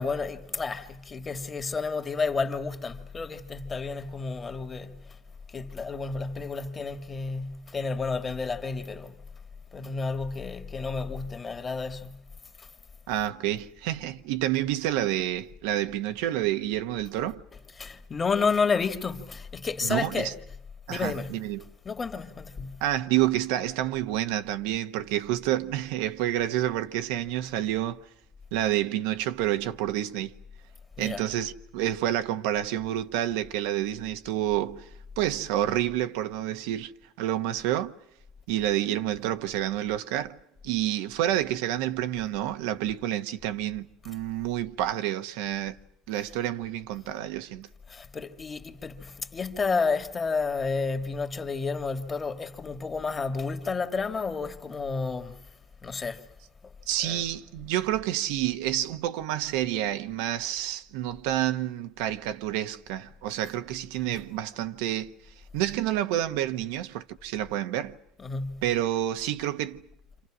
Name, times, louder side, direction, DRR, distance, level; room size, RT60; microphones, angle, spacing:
voice 1, 0.0-5.2 5.5-9.2 9.7-12.3 12.6-12.7 17.8-20.4 20.9-21.4 21.9-22.8 31.0-31.3 47.9-55.5 55.8-56.3 57.0-57.2 68.2-68.6, left 4 dB, 25° left, 2.0 m, -31 dB
voice 2, 13.1-17.4 19.8-20.3 20.9-21.6 22.8-28.0 28.5-30.3 31.0-34.9 35.2-36.9 37.2-37.9 38.5-40.4 40.6-45.8 46.1-47.7 56.9-65.1 65.5-68.0 68.6-69.8, right 13 dB, 85° right, 1.2 m, -29 dB
29.5 x 27.0 x 6.2 m
supercardioid pair, 115°, 0 cm